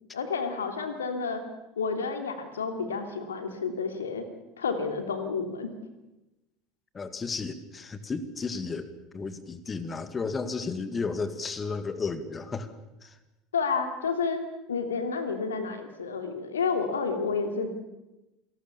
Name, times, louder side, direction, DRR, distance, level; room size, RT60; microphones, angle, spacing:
voice 1, 0.1-1.4 1.8-4.2 4.6-5.7 13.5-14.4 14.7-17.7, left 5 dB, 75° left, 7 dB, 2.8 m, -30 dB
voice 2, 6.9-12.7 13.0-13.1, left 4 dB, 25° left, 11 dB, 2.2 m, -33 dB
28.0 x 18.5 x 7.1 m, 0.99 s
figure-of-eight pair, 70°, 0 cm